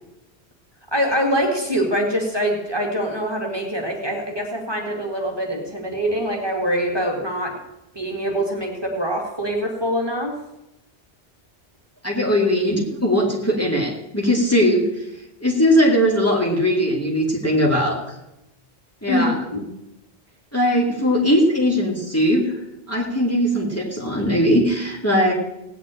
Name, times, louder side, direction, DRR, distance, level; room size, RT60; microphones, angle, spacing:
voice 1, 0.9-7.6 8.0-10.3 19.1-19.7, equal, 20° right, 0 dB, 2.1 m, -24 dB
voice 2, 12.0-15.1 15.4-18.2 19.0-19.4 20.5-22.6 22.9-25.3, equal, 15° left, -2 dB, 2.3 m, -19 dB
17.5 x 6.0 x 9.0 m, 0.91 s
omnidirectional pair, 1.1 m